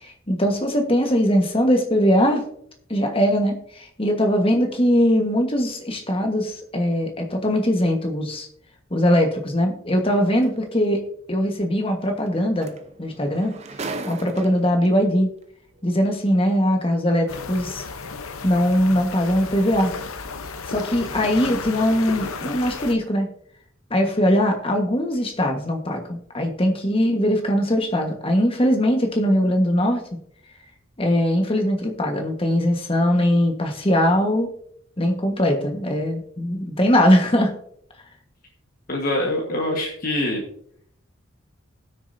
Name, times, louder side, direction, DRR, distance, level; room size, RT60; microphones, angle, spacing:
voice 1, 0.0-2.4 2.9-8.5 8.9-11.0 11.3-12.7 13.0-13.5 14.1-15.3 15.8-17.8 18.4-19.9 20.7-23.3 23.9-30.0 31.0-34.5 35.0-37.5, equal, 25° left, 4 dB, 1.3 m, -21 dB
sound 1, 10.4-10.6 12.3-12.4 12.6-14.9 15.8-15.9, right 3 dB, 30° right, 0.7 m, -35 dB
sound 2, 17.3-22.9, left 4 dB, 85° left, 0.8 m, -33 dB
voice 2, 38.9-40.4, left 1 dB, 40° left, -2 dB, 1.5 m, -24 dB
19.5 x 6.5 x 2.7 m, 0.66 s
head